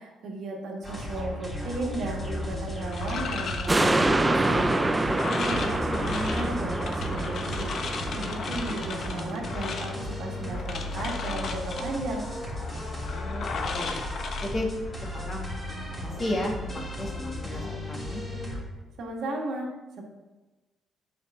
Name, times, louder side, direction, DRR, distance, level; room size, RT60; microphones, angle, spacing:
voice 1, 0.0-12.3 19.0-19.7 20.0-20.1, right 2 dB, 70° right, 0 dB, 1.8 m, -35 dB
sound 1, 0.8-18.6, left 1 dB, 15° left, 3.1 m, -35 dB
sound 2, 2.9-15.2, left 4 dB, 60° left, 1.0 m, -37 dB
sound 3, 3.7-10.3 10.8-10.9, right 2 dB, 15° right, 0.5 m, -27 dB
voice 2, 5.4-5.8 13.1-14.0 14.4-14.7 15.1-15.5 16.0-18.2, left 1 dB, 35° left, 0 dB, 1.9 m, -34 dB
8.6 x 4.8 x 5.6 m, 1.2 s
cardioid pair, 95°, 0 cm